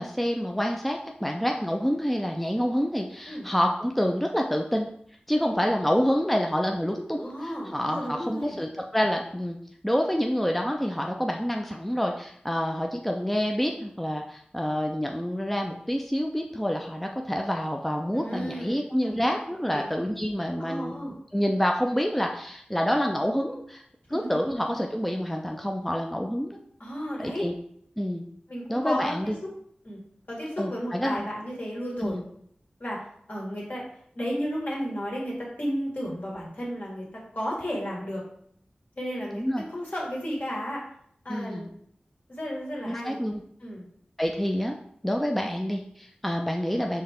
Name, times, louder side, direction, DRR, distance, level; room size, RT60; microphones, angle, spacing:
voice 1, 0.0-4.9 5.3-9.6 9.8-20.9 21.3-23.8 24.1-26.6 27.2-27.5 28.0-28.2 28.7-29.4 30.6-31.2 32.0-32.2 39.3-39.6 41.3-41.7 42.9-43.4 44.2-44.8 45.0-47.0, equal, 5° left, 2 dB, 0.4 m, -27 dB
voice 2, 7.2-8.6 18.1-19.3 19.7-19.9 20.6-21.1 24.1-24.2 26.8-27.5 28.5-29.2 29.4-29.5 29.8-30.0 30.3-32.2 32.8-33.0 33.3-33.8 34.2-38.3 39.0-39.4 39.7-40.8 41.2-41.7 42.3-43.2 43.6-43.9, equal, 60° left, -4 dB, 1.9 m, -33 dB
4.6 x 3.2 x 3.6 m, 0.67 s
wide cardioid pair, 55°, 3 cm